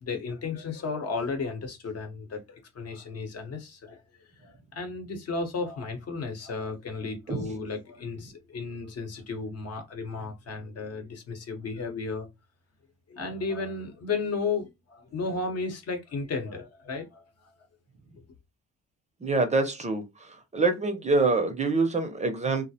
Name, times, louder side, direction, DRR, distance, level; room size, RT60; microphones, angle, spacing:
voice 1, 0.0-12.3 13.1-17.2, left 4 dB, 55° left, 0.8 m, -34 dB
voice 2, 19.2-20.0 20.5-22.6, right 3 dB, 25° right, 0.5 m, -25 dB
2.3 x 2.0 x 2.7 m
cardioid pair, 90°, 30 cm